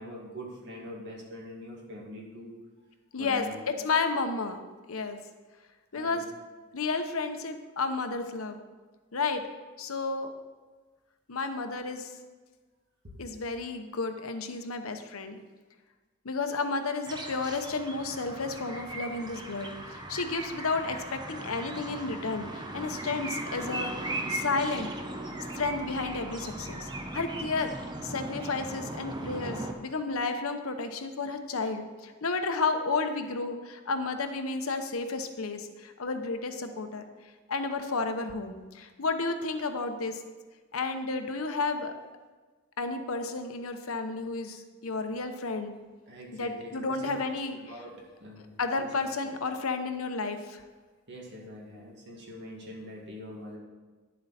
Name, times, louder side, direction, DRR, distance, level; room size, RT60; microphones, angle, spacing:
voice 1, 0.0-2.5 3.2-3.6 5.9-6.2 13.0-13.1 46.1-47.3 47.6-48.5 48.8-48.9 49.2-49.3 51.1-53.6, equal, 55° right, -2 dB, 2.2 m, -43 dB
voice 2, 3.1-4.6 4.9-5.2 5.9-6.2 6.7-8.6 9.1-9.4 9.8-10.3 11.3-12.1 13.2-15.4 16.2-23.9 24.3-24.9 25.5-27.7 28.0-37.0 37.5-40.2 40.7-41.9 42.8-45.7 46.3-47.7 48.6-50.6, left 3 dB, 80° left, 7 dB, 0.9 m, -32 dB
sound 1, 17.0-29.7, right 1 dB, 20° right, 0.9 m, -38 dB
10.5 x 7.5 x 4.2 m, 1.3 s
head